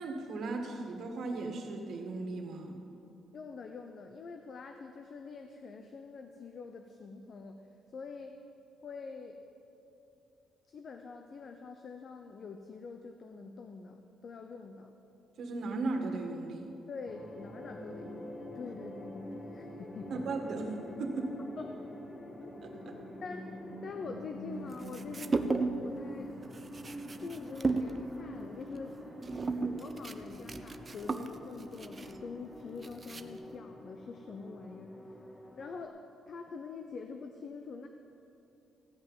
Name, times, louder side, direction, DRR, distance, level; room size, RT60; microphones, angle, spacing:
voice 1, 0.0-2.8 15.4-16.7 20.1-21.4 22.6-23.0, right 3 dB, 65° right, 3 dB, 1.9 m, -36 dB
voice 2, 3.3-7.6 7.9-8.4 8.8-9.4 10.7-14.9 16.9-20.3 21.2-21.3 21.6-21.9 23.2-23.5 23.8-26.3 27.2-29.0 29.6-35.0 35.6-37.9, left 4 dB, 55° left, 5 dB, 0.8 m, -45 dB
sound 1, 17.1-35.9, left 1 dB, 25° left, 1.2 m, -46 dB
sound 2, 24.7-25.9 26.2-33.6, right 3 dB, 30° right, 0.7 m, -35 dB
15.5 x 5.6 x 9.4 m, 2.9 s
cardioid pair, 90°, 0 cm